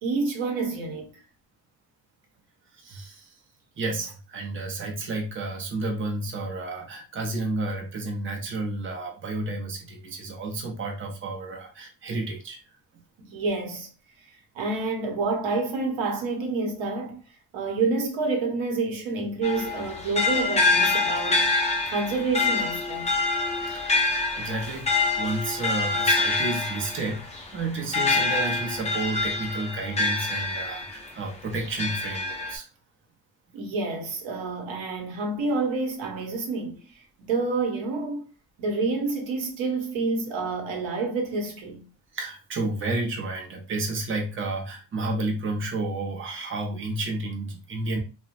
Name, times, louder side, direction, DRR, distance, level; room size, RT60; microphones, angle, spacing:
voice 1, 0.0-1.2 13.2-13.9 14.5-17.2 17.5-23.2 33.5-38.3 38.6-41.8, right 3 dB, 80° right, 0.9 m, -28 dB
voice 2, 2.7-3.4 3.8-12.6 23.6-32.7 42.1-48.0, right 2 dB, 30° right, 0.7 m, -31 dB
sound 1, 19.4-31.1 31.6-32.6, left 3 dB, 15° left, 0.6 m, -26 dB
2.9 x 2.1 x 2.5 m
cardioid pair, 110°, 45 cm